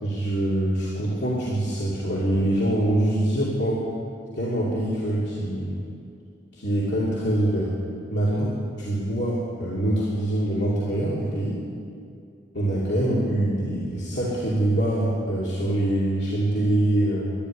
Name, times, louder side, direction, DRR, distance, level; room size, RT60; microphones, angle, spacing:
voice 1, 0.0-3.9 4.4-5.8 6.5-7.7 8.1-8.5 8.8-11.6 12.5-17.3, right 1 dB, 65° left, -7 dB, 2.6 m, -24 dB
12.0 x 11.5 x 10.0 m, 2.4 s
head